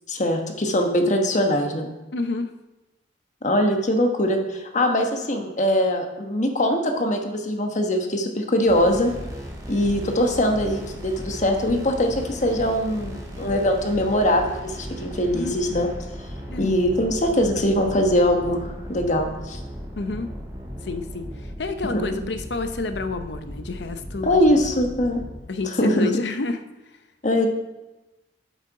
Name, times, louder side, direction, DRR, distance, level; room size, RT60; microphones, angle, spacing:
voice 1, 0.1-1.9 3.4-9.1 9.7-15.9 16.6-19.6 21.9-22.0 24.2-25.2 25.8-26.1 27.2-27.5, left 1 dB, 45° left, 3 dB, 1.2 m, -22 dB
voice 2, 2.1-2.6 15.3-15.6 16.5-16.7 19.9-20.4 20.8-24.6 25.5-26.6, left 3 dB, 75° left, 9 dB, 0.7 m, -29 dB
sound 1, 8.7-25.4, equal, 20° right, 2.1 m, -36 dB
8.0 x 6.5 x 4.8 m, 1.0 s
head